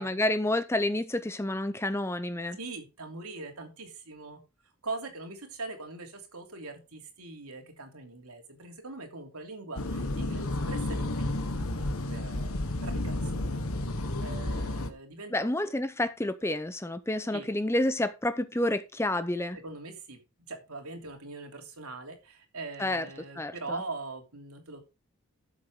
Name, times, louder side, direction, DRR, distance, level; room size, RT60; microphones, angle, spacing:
voice 1, 0.0-2.6 15.3-19.6 22.8-23.0 23.4-23.5, left 1 dB, 10° left, 0.6 m, -29 dB
voice 2, 2.6-4.4 4.8-11.4 12.1-13.6 14.2-15.5 17.3-17.5 19.5-20.2 20.5-24.8, right 3 dB, 80° right, 3.0 m, -42 dB
sound 1, 9.8-14.9, left 1 dB, 75° left, 1.4 m, -31 dB
12.5 x 7.4 x 3.7 m
head